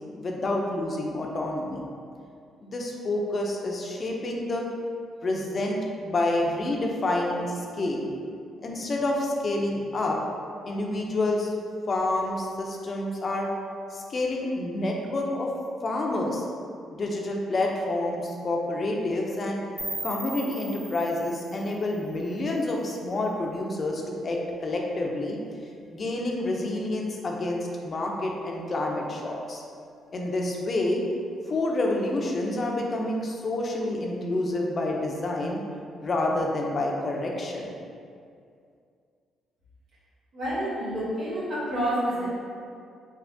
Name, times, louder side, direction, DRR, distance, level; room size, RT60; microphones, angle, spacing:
voice 1, 0.2-1.8 2.6-4.7 5.2-8.1 8.6-10.2 10.6-11.5 11.9-13.5 13.9-15.5 15.8-16.5 16.9-19.6 20.0-25.4 25.9-29.6 30.1-31.0 31.5-35.6 36.0-37.7, left 2 dB, 40° left, 0 dB, 0.5 m, -28 dB
sound 1, 19.8-22.7, right 2 dB, 50° right, 1.1 m, -39 dB
voice 2, 40.3-42.3, equal, 75° right, -12 dB, 1.2 m, -28 dB
3.4 x 2.7 x 2.6 m, 2.4 s
cardioid pair, 90°, 0 cm